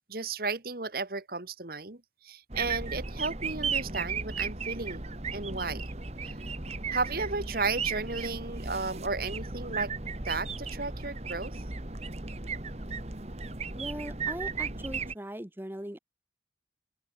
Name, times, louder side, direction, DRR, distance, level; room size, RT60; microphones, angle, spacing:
voice 1, 0.1-5.1 5.3-6.0 6.2-6.3 6.9-9.9 10.3-11.6, right 3 dB, 55° right, 1.8 m, -34 dB
sound 1, 2.5-15.1, right 4 dB, 35° right, 2.0 m, -35 dB
voice 2, 13.8-16.0, right 1 dB, 10° right, 1.2 m, -39 dB
open air
head